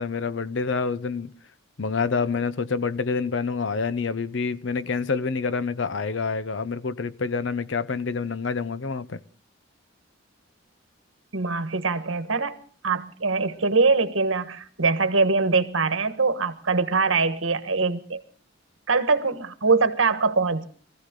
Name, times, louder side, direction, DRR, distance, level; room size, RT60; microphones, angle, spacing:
voice 1, 0.0-1.3 1.8-9.2, left 4 dB, 65° left, 0.7 m, -27 dB
voice 2, 11.3-18.2 18.9-20.7, right 4 dB, 75° right, 1.3 m, -23 dB
23.0 x 15.0 x 3.8 m
head